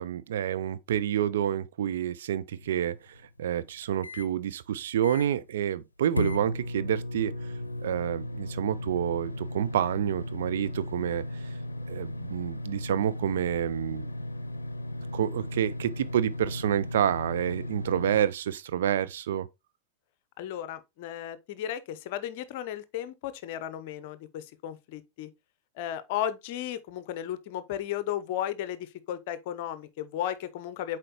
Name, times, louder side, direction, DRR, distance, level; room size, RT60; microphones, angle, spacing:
voice 1, 0.0-3.0 3.4-7.3 7.8-11.2 11.9-14.1 15.1-19.5, right 10 dB, 60° right, 0.5 m, -28 dB
sound 1, 2.5-4.3 4.7-4.8 5.0-5.5 6.2-18.2, left 1 dB, 80° left, 0.6 m, -36 dB
voice 2, 20.4-25.3 25.8-31.0, left 11 dB, 50° left, 0.7 m, -34 dB
7.6 x 4.5 x 3.0 m
figure-of-eight pair, 90°, 0 cm